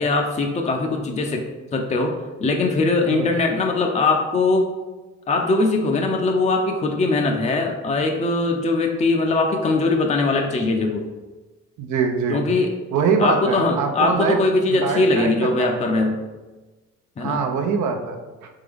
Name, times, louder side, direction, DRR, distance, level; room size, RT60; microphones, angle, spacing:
voice 1, 0.0-1.4 1.7-2.2 2.4-4.7 5.3-11.1 12.3-12.7 13.2-16.2 17.2-17.4, left 3 dB, 25° left, 3 dB, 0.5 m, -21 dB
voice 2, 11.8-12.4 12.9-14.4 14.7-15.8 17.2-18.5, right 5 dB, 75° right, 4 dB, 0.7 m, -23 dB
3.8 x 3.6 x 3.4 m, 1.2 s
cardioid pair, 90°, 30 cm